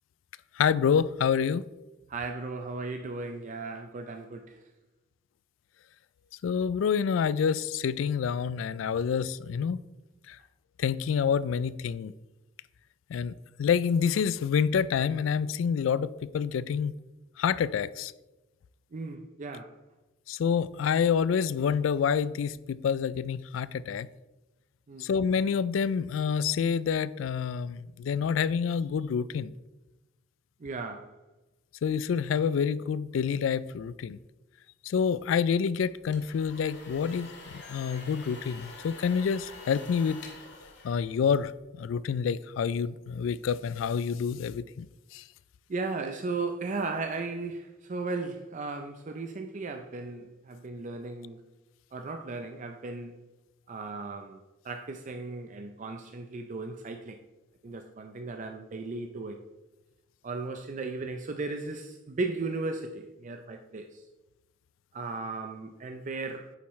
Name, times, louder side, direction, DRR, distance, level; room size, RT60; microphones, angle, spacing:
voice 1, 0.6-1.7 6.4-9.8 10.3-10.4 10.8-12.1 13.1-13.3 13.6-16.9 17.4-18.1 20.3-24.1 25.0-29.5 31.8-34.2 34.8-40.2 40.8-41.5 41.8-44.9 45.1-45.2, left 7 dB, 85° left, 18 dB, 0.3 m, -27 dB
voice 2, 2.1-4.6 18.9-19.8 24.9-25.1 30.6-31.2 45.7-51.4 51.9-53.2 53.7-57.2 57.6-59.4 60.2-64.0 64.9-66.5, right 3 dB, 40° right, 6 dB, 0.5 m, -36 dB
sound 1, 35.9-41.6, left 3 dB, 65° left, 1.6 m, -47 dB
9.0 x 7.1 x 3.1 m, 1.0 s
head